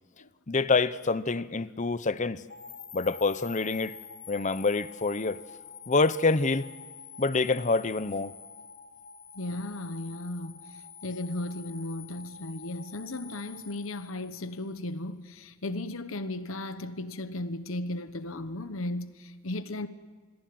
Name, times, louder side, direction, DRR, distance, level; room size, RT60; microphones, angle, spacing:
voice 1, 0.5-2.4 2.9-3.9 4.3-5.4 5.9-6.7 7.2-8.3, left 3 dB, 35° left, 0.8 m, -26 dB
sound 1, 2.5-14.7, left 6 dB, 60° left, 2.5 m, -47 dB
voice 2, 9.3-19.9, left 1 dB, 75° left, 1.1 m, -36 dB
26.5 x 22.5 x 7.8 m
head